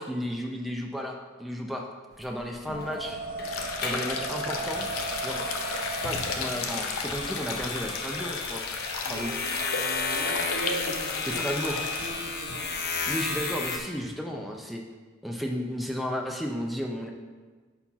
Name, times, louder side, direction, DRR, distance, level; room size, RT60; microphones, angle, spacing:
voice 1, 0.0-1.9 2.2-3.2 3.8-4.9 5.2-5.4 6.0-8.6 9.1-9.3 11.3-11.8 13.1-14.8 15.2-17.1, equal, ahead, 1 dB, 0.4 m, -33 dB
sound 1, 2.1-13.8, left 4 dB, 50° left, 0.7 m, -34 dB
sound 2, 2.7-13.0, right 3 dB, 35° right, 0.9 m, -39 dB
sound 3, 3.4-12.1, left 5 dB, 85° left, 0.7 m, -34 dB
voice 2, 9.0-11.5 12.0-12.7, right 2 dB, 80° right, 1 dB, 1.1 m, -38 dB
5.7 x 4.6 x 5.6 m, 1.4 s
head